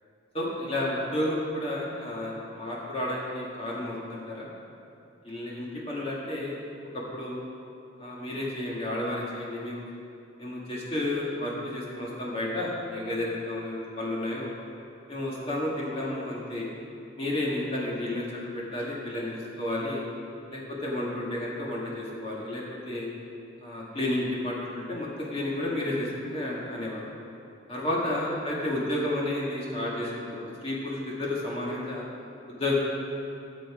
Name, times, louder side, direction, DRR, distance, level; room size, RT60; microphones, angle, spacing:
voice 1, 0.3-4.5 5.2-6.6 6.9-7.4 8.0-9.8 10.4-14.5 15.1-16.7 17.2-18.3 18.5-20.0 20.5-23.1 23.6-27.0 27.7-32.0 32.6-32.7, left 1 dB, 30° left, -5 dB, 1.8 m, -31 dB
13.5 x 7.7 x 4.8 m, 2.6 s
head